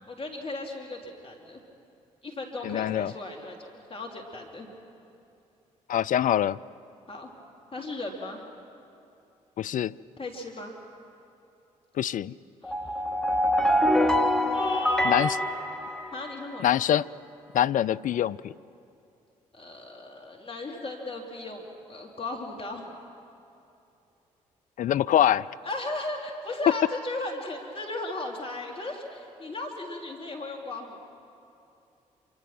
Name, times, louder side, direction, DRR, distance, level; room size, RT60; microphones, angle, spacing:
voice 1, 0.1-1.6 2.2-4.7 7.1-7.3 7.7-8.4 10.2-10.7 12.6-13.0 14.5-15.5 16.1-16.7 19.5-23.0 25.6-31.0, left 2 dB, 35° left, 0 dB, 3.5 m, -36 dB
voice 2, 2.6-3.1 5.9-6.6 9.6-10.0 12.0-12.4 15.0-15.4 16.6-17.1 17.5-18.5 24.8-25.5, left 10 dB, 50° left, 16 dB, 0.5 m, -24 dB
sound 1, 12.6-16.6, equal, 5° left, 1.9 m, -25 dB
26.5 x 25.0 x 6.1 m, 2.8 s
hypercardioid pair, 40°, 17 cm